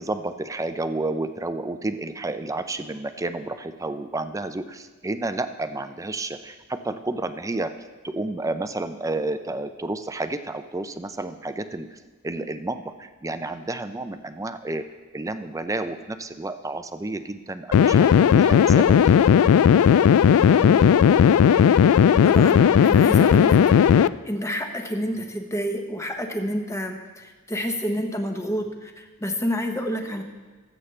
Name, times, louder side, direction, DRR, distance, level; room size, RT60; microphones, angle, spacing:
voice 1, 0.0-7.7 8.0-12.0 12.2-14.8 15.1-19.2, right 2 dB, 15° right, 10 dB, 0.5 m, -31 dB
sound 1, 17.7-24.1, left 8 dB, 75° left, 0.3 m, -16 dB
voice 2, 22.2-24.0 24.2-30.2, equal, 15° left, 4 dB, 1.0 m, -29 dB
19.0 x 8.1 x 3.3 m, 1.3 s
head